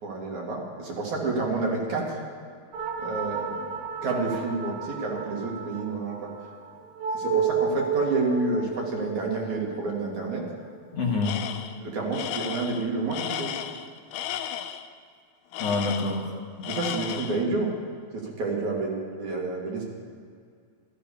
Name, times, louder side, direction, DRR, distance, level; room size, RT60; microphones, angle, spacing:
voice 1, 0.0-2.2 3.0-3.7 4.0-6.3 6.7-6.8 7.1-10.4 11.8-13.5 16.6-17.7 18.2-19.8, right 3 dB, 60° right, -2 dB, 3.4 m, -29 dB
sound 1, 2.7-11.6, right 6 dB, 75° right, 2.8 m, -32 dB
voice 2, 10.9-11.4 15.6-16.7, left 3 dB, 55° left, -2 dB, 2.2 m, -27 dB
Tools, 11.2-11.8 12.1-14.9 15.5-16.3 16.6-17.5, left 10 dB, 80° left, 2.2 m, -34 dB
14.0 x 13.5 x 6.9 m, 2.1 s
omnidirectional pair, 4.0 m